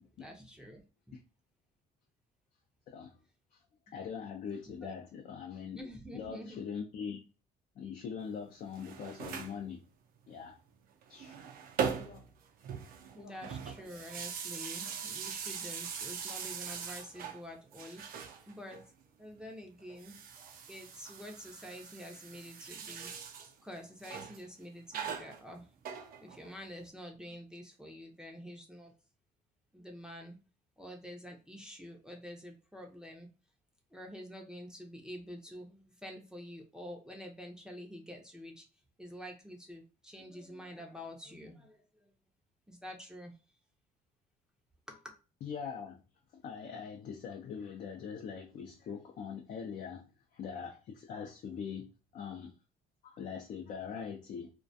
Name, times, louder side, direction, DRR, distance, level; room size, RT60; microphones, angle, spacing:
voice 1, 0.2-0.8 1.1-1.2 4.7-4.9 5.7-6.6 13.1-18.0 18.5-18.8 19.2-20.2 20.7-23.1 23.6-25.7 26.2-28.9 29.7-30.4 30.8-33.3 33.9-38.7 39.0-42.1 42.7-43.3 44.9-45.1, equal, 5° right, 0.5 m, -47 dB
voice 2, 2.9-3.2 3.5-5.8 6.1-7.2 7.8-9.8 10.3-10.6 11.1-11.4 12.0-12.3 13.1-13.5 45.4-46.0 46.3-51.9 52.1-52.5 53.0-54.5, left 6 dB, 50° left, 0.4 m, -42 dB
sound 1, 8.6-9.6 11.0-12.3 12.6-17.4 17.7-18.8 19.9-23.5 24.0-24.4 24.9-26.5, right 7 dB, 60° right, 0.5 m, -41 dB
2.3 x 2.2 x 2.6 m
cardioid pair, 110°, 17 cm